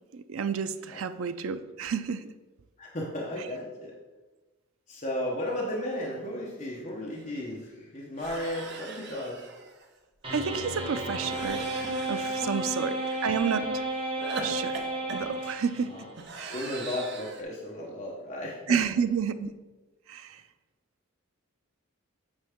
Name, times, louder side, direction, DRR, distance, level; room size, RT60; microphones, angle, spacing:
voice 1, 0.1-2.3 10.3-11.7 12.1-13.8 14.4-15.9 16.4-16.5 18.7-19.5 20.1-20.4, right 6 dB, 75° right, 11 dB, 0.4 m, -30 dB
voice 2, 2.8-3.9 4.9-9.5 12.3-12.6 15.9-16.1 16.4-18.8, left 1 dB, 35° left, -3 dB, 1.0 m, -35 dB
sound 1, 6.8-6.9 7.1-7.3 8.2-9.8 11.2-13.4 14.2-17.4, right 3 dB, 50° right, 0.8 m, -42 dB
sound 2, 10.2-16.0, right 1 dB, 25° right, 1.2 m, -32 dB
8.8 x 4.7 x 3.6 m, 1.2 s
head